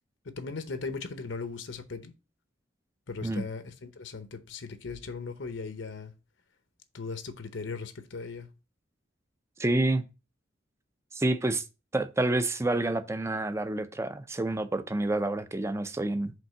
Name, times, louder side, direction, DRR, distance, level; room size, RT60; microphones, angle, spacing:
voice 1, 0.2-2.1 3.1-6.1 6.9-8.5, left 4 dB, 75° left, 0.8 m, -38 dB
voice 2, 9.6-10.0 11.1-11.6 11.9-16.3, right 2 dB, 15° right, 0.5 m, -28 dB
5.3 x 3.6 x 5.8 m
head